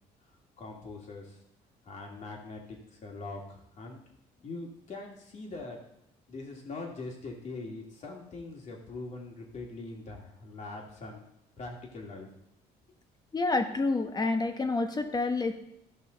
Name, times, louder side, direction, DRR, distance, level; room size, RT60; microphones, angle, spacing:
voice 1, 0.6-1.4 1.8-4.0 4.4-5.8 6.3-11.3 11.6-12.3, left 3 dB, 45° left, 0 dB, 2.5 m, -42 dB
voice 2, 13.3-15.6, left 3 dB, 25° left, 6 dB, 1.2 m, -28 dB
15.0 x 5.5 x 4.0 m, 0.77 s
cardioid pair, 110°, 17 cm